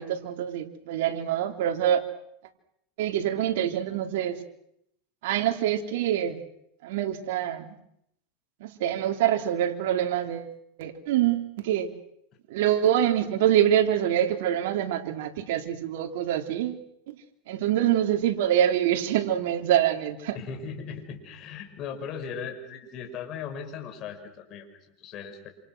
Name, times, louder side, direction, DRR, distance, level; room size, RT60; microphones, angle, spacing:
voice 1, 0.0-2.0 3.0-4.4 5.2-6.4 6.8-7.8 8.6-10.5 10.8-11.9 12.5-17.2 17.5-20.4, right 11 dB, 70° right, 4 dB, 3.5 m, -25 dB
voice 2, 20.3-24.7 25.0-25.5, left 6 dB, 40° left, 5 dB, 6.0 m, -38 dB
28.0 x 27.0 x 6.3 m, 0.75 s
supercardioid pair, 140°, 0 cm